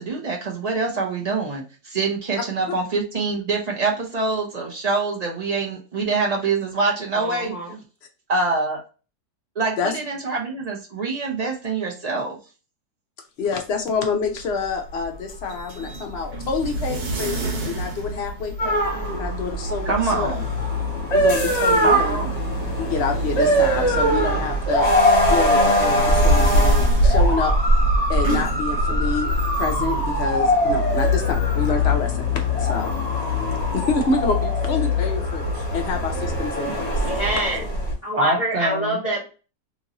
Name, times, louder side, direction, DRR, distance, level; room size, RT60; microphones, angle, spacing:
voice 1, 0.0-7.5 8.3-8.8 9.6-12.4 19.8-20.4 21.8-22.4 38.1-39.0, right 3 dB, 45° right, -1 dB, 0.5 m, -25 dB
voice 2, 7.1-7.8 37.0-37.6 38.0-39.3, right 1 dB, 25° left, -5 dB, 1.2 m, -26 dB
voice 3, 13.4-17.4 17.6-20.3 21.1-22.2 22.8-27.5 28.1-32.9 33.7-37.0, left 4 dB, 65° left, 4 dB, 0.6 m, -27 dB
sound 1, 14.0-31.1, right 1 dB, 80° right, 1.3 m, -33 dB
sound 2, 18.6-37.9, equal, 50° left, 1.3 m, -21 dB
3.0 x 2.5 x 2.8 m, 0.34 s
omnidirectional pair, 1.6 m